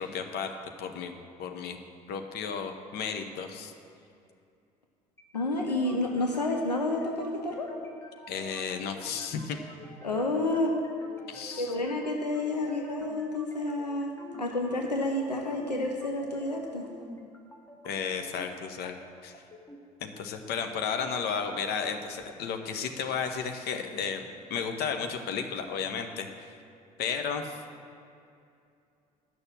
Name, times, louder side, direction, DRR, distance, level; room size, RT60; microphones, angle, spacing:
voice 1, 0.0-1.8 2.1-3.7 8.3-9.6 11.3-11.7 17.8-19.0 19.2-19.3 20.0-24.2 24.5-26.6 27.0-27.6, left 6 dB, 50° left, 6 dB, 1.0 m, -33 dB
sound 1, 5.2-21.2, left 1 dB, 15° left, 1.3 m, -49 dB
voice 2, 5.3-7.7 10.0-10.7 11.6-14.1 14.4-16.8, left 2 dB, 90° left, 1 dB, 0.8 m, -29 dB
10.5 x 6.6 x 7.3 m, 2.5 s
figure-of-eight pair, 60°, 21 cm